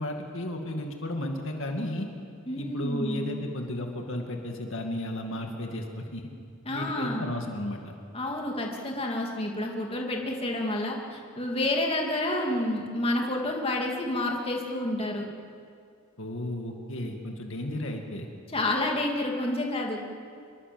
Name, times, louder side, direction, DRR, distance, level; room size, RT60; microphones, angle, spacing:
voice 1, 0.0-2.1 2.6-6.2 6.7-7.9 16.2-18.3, left 1 dB, 60° left, 2 dB, 2.3 m, -33 dB
voice 2, 2.5-3.3 6.7-7.3 8.1-15.3 18.5-20.0, left 1 dB, 25° left, 0 dB, 2.7 m, -29 dB
26.0 x 23.0 x 7.8 m, 2.3 s
head